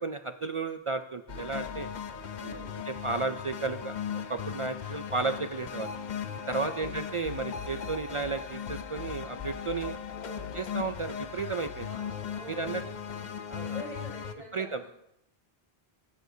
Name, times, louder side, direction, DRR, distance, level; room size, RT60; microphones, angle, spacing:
voice 1, 0.0-1.9 2.4-2.6 2.9-5.9 6.5-10.0 10.5-11.9 12.5-12.8 13.5-13.8 14.5-14.9, right 4 dB, 60° right, 9 dB, 0.3 m, -33 dB
sound 1, 1.3-14.4, left 8 dB, 55° left, 0.6 m, -38 dB
voice 2, 2.4-2.8 4.8-5.3 6.6-7.0 10.1-10.5 11.8-13.2 13.6-14.9, equal, 35° left, -3 dB, 3.8 m, -46 dB
14.5 x 9.3 x 2.7 m, 0.82 s
omnidirectional pair, 1.1 m